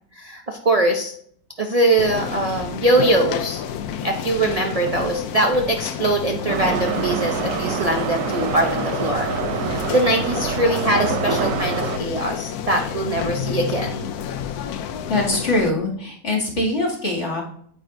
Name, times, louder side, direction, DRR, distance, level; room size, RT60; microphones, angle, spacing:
voice 1, 0.1-1.1 1.6-3.6 4.0-9.3 9.6-14.1, right 1 dB, 40° right, 3 dB, 0.5 m, -22 dB
sound 1, 2.0-15.7, left 8 dB, 70° left, 1.1 m, -29 dB
Subway metro underground, 6.5-12.0, right 8 dB, 65° right, 0.9 m, -26 dB
voice 2, 15.1-17.4, left 2 dB, 45° left, -3 dB, 2.8 m, -22 dB
9.4 x 8.7 x 2.7 m, 0.62 s
omnidirectional pair, 1.8 m